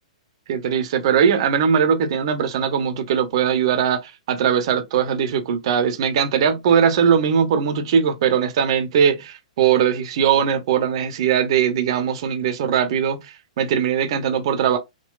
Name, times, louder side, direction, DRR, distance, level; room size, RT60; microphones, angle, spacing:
voice 1, 0.5-13.2 13.6-14.8, right 7 dB, 50° right, 0.7 m, -20 dB
3.7 x 2.2 x 2.3 m
figure-of-eight pair, 115°, 4 cm